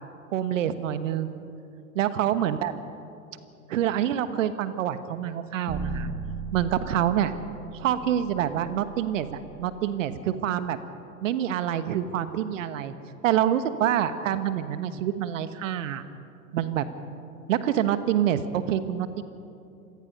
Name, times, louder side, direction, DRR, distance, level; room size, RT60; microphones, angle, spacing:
voice 1, 0.3-1.5 1.9-2.7 3.7-6.1 6.5-7.3 7.7-10.8 11.2-12.9 13.2-16.0 16.5-16.9 17.5-19.2, right 10 dB, 60° right, 12 dB, 1.3 m, -26 dB
sound 1, 5.7-9.9, right 4 dB, 10° right, 1.4 m, -37 dB
25.5 x 19.0 x 5.4 m, 2.6 s
figure-of-eight pair, 100°, 44 cm